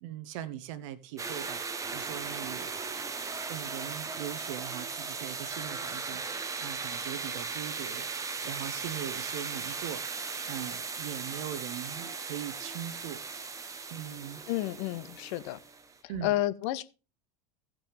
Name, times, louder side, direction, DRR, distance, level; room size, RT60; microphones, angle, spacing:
voice 1, 0.0-2.7 3.5-13.2 13.5-14.4 16.1-16.4, right 11 dB, 50° right, 1.0 m, -41 dB
sound 1, 1.2-16.0, right 4 dB, 15° right, 0.8 m, -37 dB
voice 2, 14.5-15.6 16.2-16.8, left 15 dB, 45° left, 0.7 m, -30 dB
16.0 x 6.0 x 3.2 m
figure-of-eight pair, 80°, 21 cm